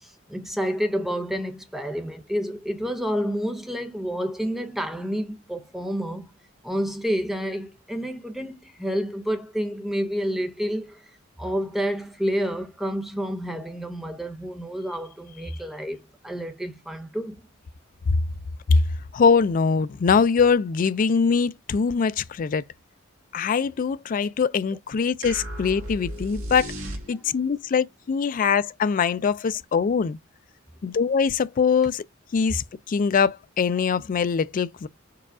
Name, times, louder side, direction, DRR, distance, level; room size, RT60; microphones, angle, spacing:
voice 1, 0.0-6.3 6.6-11.0 11.4-17.4, equal, ahead, 0.6 m, -29 dB
voice 2, 19.1-22.6 23.3-26.7 27.1-30.2 30.8-32.0 32.3-34.9, left 5 dB, 40° left, 0.3 m, -22 dB
sound 1, 25.2-27.5, right 1 dB, 85° right, 1.4 m, -35 dB
4.7 x 2.3 x 4.7 m
head